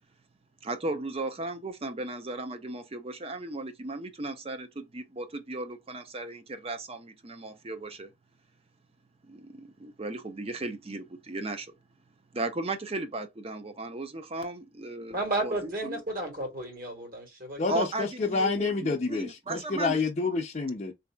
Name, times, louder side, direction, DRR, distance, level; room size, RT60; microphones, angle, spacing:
voice 1, 0.6-8.1 9.2-11.7 12.3-15.2 15.4-16.0 17.7-20.0, right 2 dB, 30° right, 0.5 m, -36 dB
voice 2, 15.1-17.6, right 2 dB, 50° right, 1.5 m, -32 dB
voice 3, 17.6-20.9, left 4 dB, 35° left, 0.5 m, -28 dB
4.0 x 2.7 x 2.3 m
head